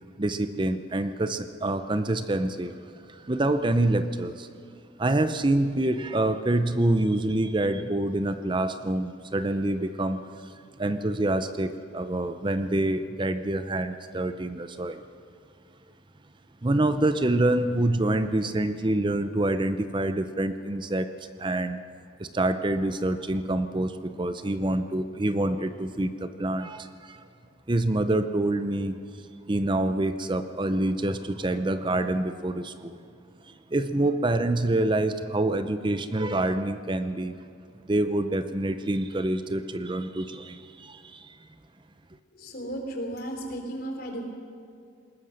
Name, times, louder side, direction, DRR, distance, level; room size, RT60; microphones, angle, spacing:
voice 1, 0.2-2.8 3.1-4.5 5.0-10.2 10.8-15.0 16.6-21.1 21.4-21.8 22.2-27.2 27.7-29.0 29.5-33.1 33.5-37.3 37.9-41.4, right 1 dB, 25° right, 10 dB, 0.6 m, -26 dB
voice 2, 42.4-44.3, right 1 dB, 50° left, 2 dB, 3.6 m, -34 dB
21.0 x 19.5 x 6.6 m, 2.3 s
head